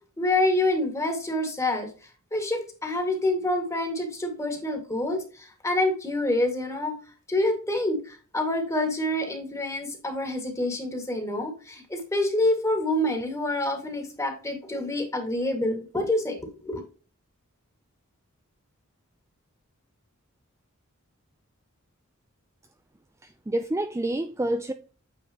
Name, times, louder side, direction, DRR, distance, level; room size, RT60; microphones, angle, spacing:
voice 1, 0.2-1.9 2.3-7.0 7.3-16.8, left 1 dB, 15° left, 1.9 m, -27 dB
voice 2, 23.2-24.7, right 1 dB, 15° right, 0.4 m, -28 dB
8.9 x 4.7 x 2.9 m
head